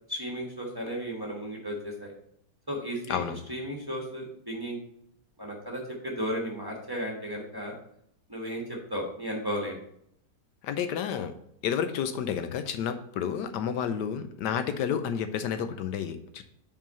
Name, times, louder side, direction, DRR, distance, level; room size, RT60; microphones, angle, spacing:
voice 1, 0.1-2.1 2.7-3.2 3.5-4.8 5.4-7.7 8.3-9.8, equal, 15° right, -3 dB, 1.2 m, -34 dB
voice 2, 10.6-11.3 11.6-16.4, left 8 dB, 80° left, 9 dB, 1.2 m, -30 dB
5.8 x 4.6 x 5.3 m, 0.71 s
omnidirectional pair, 1.9 m